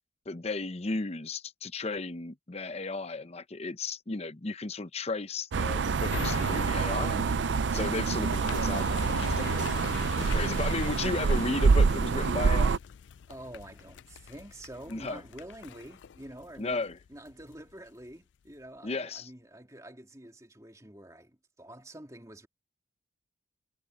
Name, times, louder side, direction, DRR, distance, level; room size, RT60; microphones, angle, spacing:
voice 1, 0.3-7.3 7.7-9.8 10.2-12.8 14.9-15.2 16.6-17.0 18.8-19.3, left 3 dB, 35° left, 0.8 m, -34 dB
sound 1, 5.5-12.8, right 5 dB, 70° right, 0.4 m, -26 dB
sound 2, 6.1-17.5 18.0-18.1, left 7 dB, 70° left, 0.4 m, -42 dB
voice 2, 13.3-22.5, right 1 dB, 15° right, 2.7 m, -47 dB
head